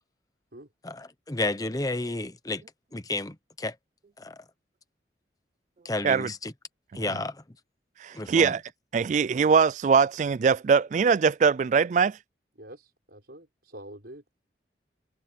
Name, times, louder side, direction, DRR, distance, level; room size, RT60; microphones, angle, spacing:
voice 1, 0.8-2.6 2.9-3.7 4.2-4.4 5.8-6.5 6.9-7.4 8.1-8.5, left 2 dB, 20° left, 1.0 m, -32 dB
voice 2, 8.0-8.6 8.9-12.2, right 6 dB, 45° right, 0.3 m, -22 dB
voice 3, 12.6-14.2, right 1 dB, 65° right, 6.2 m, -46 dB
head